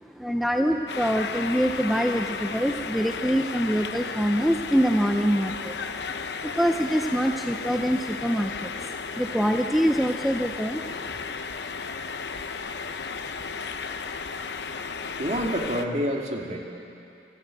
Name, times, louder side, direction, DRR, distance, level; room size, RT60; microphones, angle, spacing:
voice 1, 0.0-6.1 6.4-8.8 9.1-11.4, equal, ahead, 4 dB, 0.6 m, -25 dB
sound 1, 0.9-15.9, left 5 dB, 65° left, 0.9 m, -34 dB
voice 2, 15.2-16.6, equal, 40° right, 1 dB, 2.2 m, -27 dB
24.5 x 14.0 x 9.0 m, 2.7 s
head